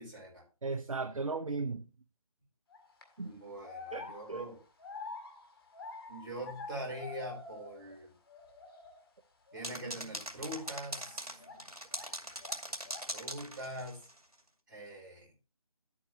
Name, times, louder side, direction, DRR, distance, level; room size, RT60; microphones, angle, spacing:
voice 1, 0.0-0.4 3.2-4.6 6.1-8.1 9.5-11.4 13.1-14.1 14.7-15.3, right 1 dB, 35° right, 4.6 m, -43 dB
voice 2, 0.6-1.8 3.2-3.3 3.9-4.5 9.9-10.0, right 3 dB, 60° right, 0.7 m, -36 dB
sound 1, 2.7-3.0 3.6-8.0 8.3-9.0 9.5-9.7 10.5-12.1 12.4-13.2, left 4 dB, 40° left, 2.1 m, -47 dB
sound 2, 9.6-14.2, right 1 dB, 85° right, 2.3 m, -41 dB
10.5 x 8.6 x 3.1 m
figure-of-eight pair, 155°, 19 cm